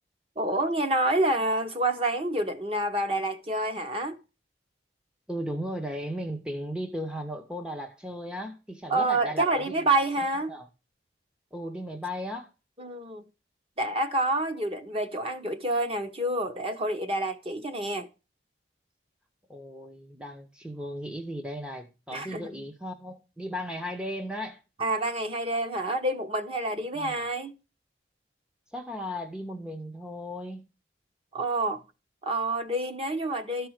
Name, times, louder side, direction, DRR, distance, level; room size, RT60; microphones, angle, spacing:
voice 1, 0.4-4.2 8.9-10.5 12.8-13.2 13.8-18.1 22.1-22.6 24.8-27.5 31.3-31.8 32.2-33.7, right 2 dB, 30° right, 1.1 m, -28 dB
voice 2, 5.3-9.7 10.2-10.7 11.5-12.5 19.5-24.6 26.9-27.2 28.7-30.7, equal, 5° right, 0.8 m, -36 dB
13.0 x 4.7 x 6.4 m
head